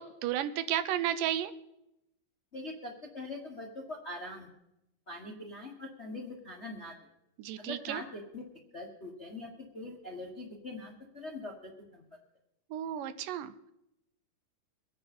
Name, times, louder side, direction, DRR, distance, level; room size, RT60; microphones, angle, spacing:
voice 1, 0.0-1.5 7.4-8.0 12.7-13.7, right 11 dB, 85° right, 12 dB, 2.4 m, -33 dB
voice 2, 2.5-4.5 5.1-6.9 7.6-8.4 8.7-12.0, left 2 dB, 45° left, 0 dB, 0.8 m, -43 dB
24.0 x 9.6 x 4.3 m, 0.85 s
omnidirectional pair, 3.7 m